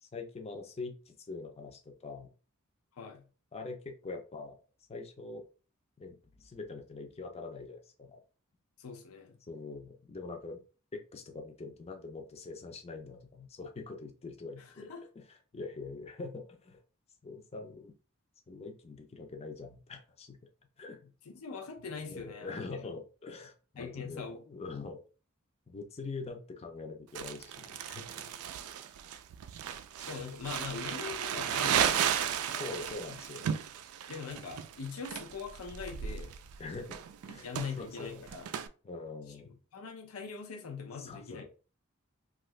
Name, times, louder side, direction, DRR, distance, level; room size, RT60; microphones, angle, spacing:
voice 1, 0.0-2.3 3.5-4.6 4.9-5.4 6.0-8.2 9.5-10.6 10.9-14.9 15.2-15.3 15.5-16.8 17.2-17.9 18.5-20.4 20.8-21.0 22.1-25.0 25.7-28.2 32.6-33.5 36.6-37.0 37.3-37.5 37.8-38.2 38.8-39.5 41.0-41.4, left 3 dB, 30° left, 0.5 m, -43 dB
voice 2, 2.9-3.3 8.8-9.4 14.6-15.0 21.3-22.9 23.8-24.4 28.3-28.4 30.0-32.7 34.1-36.3 37.4-38.5 39.4-41.4, left 5 dB, 80° left, 0.5 m, -42 dB
Crumpling crinkling, 27.1-38.7, right 9 dB, 90° right, 0.3 m, -35 dB
2.7 x 2.4 x 3.1 m
head